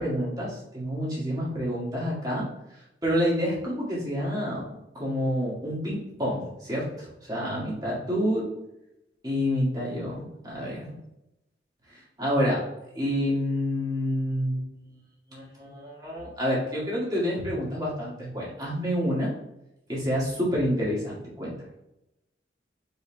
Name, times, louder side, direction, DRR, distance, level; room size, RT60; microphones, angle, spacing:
voice 1, 0.0-2.4 3.0-8.5 9.2-10.9 11.9-12.6 13.0-14.6 15.3-19.3 19.9-21.6, equal, 20° right, -5 dB, 1.7 m, -28 dB
5.2 x 4.5 x 2.2 m, 0.87 s
head